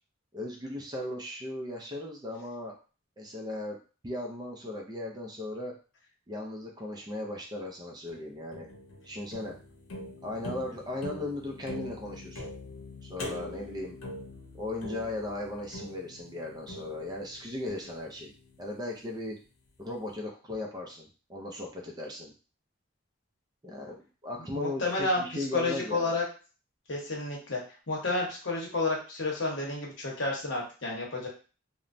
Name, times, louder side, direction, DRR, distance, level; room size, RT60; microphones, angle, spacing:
voice 1, 0.3-2.8 3.2-3.8 4.0-5.7 6.3-8.7 9.0-9.6 10.2-12.5 13.0-14.0 14.6-18.3 18.6-19.4 19.8-22.3 23.6-26.2, left 1 dB, 20° right, 0 dB, 0.4 m, -37 dB
sound 1, 8.1-19.3, left 1 dB, 90° left, 0.7 m, -44 dB
voice 2, 24.5-26.2 26.9-27.6 27.9-31.3, left 3 dB, 60° left, -2 dB, 0.9 m, -31 dB
3.0 x 2.1 x 2.5 m, 0.36 s
head